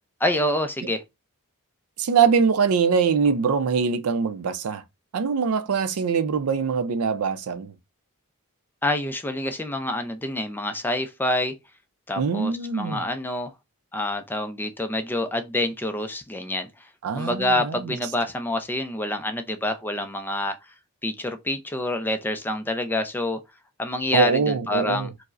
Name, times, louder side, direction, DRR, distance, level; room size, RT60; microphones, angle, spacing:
voice 1, 0.2-1.0 8.8-11.5 12.1-13.5 13.9-16.9 17.1-20.6 21.0-23.4 23.8-25.1, left 1 dB, 10° left, 0.3 m, -27 dB
voice 2, 2.0-4.8 5.1-7.7 12.2-13.0 17.0-17.9 24.1-25.1, right 6 dB, 70° right, 0.4 m, -23 dB
4.6 x 2.0 x 2.4 m
head